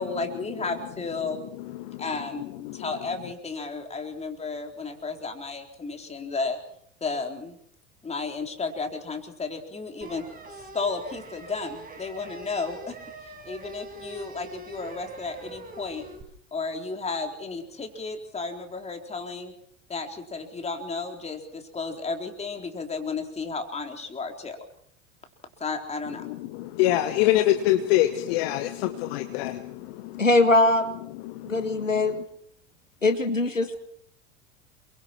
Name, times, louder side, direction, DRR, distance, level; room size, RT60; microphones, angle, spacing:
voice 1, 0.0-1.4 2.0-6.6 7.0-7.6 8.0-10.3 10.7-13.0 13.2-16.1 16.5-19.5 19.9-24.6 25.6-26.3, left 4 dB, 15° left, 4 dB, 4.1 m, -33 dB
sound 1, 10.0-16.2, right 2 dB, 25° right, 5.9 m, -43 dB
voice 2, 26.2-30.3 31.1-32.2, left 14 dB, 55° left, 8 dB, 1.6 m, -26 dB
voice 3, 30.2-30.9 31.5-32.1 33.0-33.8, left 2 dB, 90° left, 8 dB, 1.8 m, -21 dB
28.5 x 24.0 x 4.6 m, 0.65 s
figure-of-eight pair, 80°, 37 cm